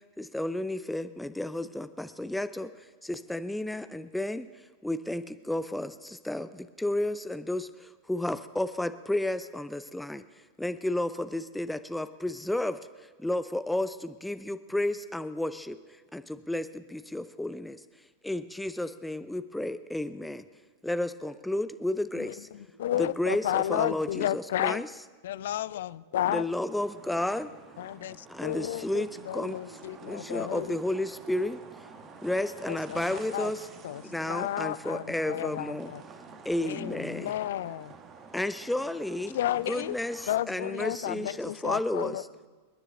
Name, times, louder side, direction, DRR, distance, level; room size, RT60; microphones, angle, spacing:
voice 1, 0.2-10.2 10.6-17.8 18.2-20.4 20.8-22.5 23.0-24.9 26.3-27.5 28.3-29.6 30.0-31.9 32.2-33.7 34.0-35.9 36.4-37.3 38.3-39.4 39.7-42.3, left 1 dB, 5° left, 11 dB, 0.6 m, -32 dB
voice 2, 22.2-24.8 25.2-26.4 27.8-30.7 32.7-33.5 33.8-36.0 36.6-37.9 39.3-40.0 40.3-42.2, left 12 dB, 60° left, 19 dB, 0.4 m, -32 dB
voice 3, 22.7-23.2 28.6-29.3 29.5-30.4 31.0-32.2 33.3-34.2 34.9-36.4 39.1-39.8 40.6-41.8 42.2-42.5, left 1 dB, 90° right, 1 dB, 2.3 m, -55 dB
sound 1, 26.7-40.4, right 5 dB, 30° right, 1.4 m, -50 dB
28.0 x 9.9 x 3.7 m, 1.4 s
figure-of-eight pair, 90°, 0 cm